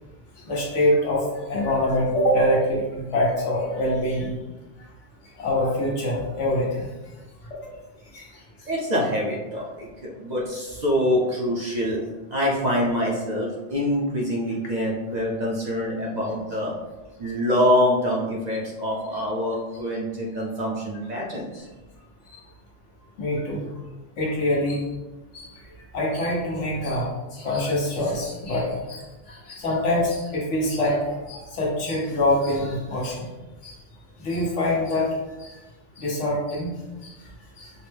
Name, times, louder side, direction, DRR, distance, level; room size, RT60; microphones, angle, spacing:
voice 1, 0.5-4.4 5.4-6.9 8.1-8.2 22.3-22.4 23.2-23.6 24.2-24.8 25.3-25.5 25.9-33.2 33.6-33.8 34.2-35.1 35.4-35.5 36.0-36.7 37.0-37.1 37.6-37.7, left 1 dB, 80° left, -3 dB, 1.3 m, -24 dB
voice 2, 8.7-12.0 12.3-16.7 17.2-21.6, equal, 45° right, -4 dB, 0.7 m, -25 dB
5.1 x 2.1 x 3.3 m, 1.1 s
omnidirectional pair, 1.2 m